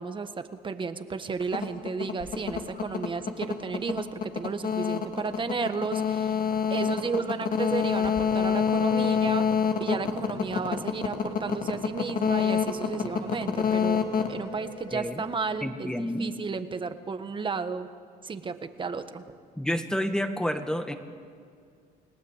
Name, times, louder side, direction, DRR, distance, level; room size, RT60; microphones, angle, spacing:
voice 1, 0.0-6.4 6.7-9.5 9.8-17.9 18.2-19.3, right 5 dB, 30° right, 9 dB, 1.5 m, -33 dB
sound 1, 1.4-15.3, left 7 dB, 55° left, 2.6 m, -27 dB
voice 2, 15.6-16.3 19.6-20.9, equal, 5° left, 7 dB, 1.8 m, -29 dB
29.5 x 18.5 x 8.2 m, 2.3 s
cardioid pair, 110°, 17 cm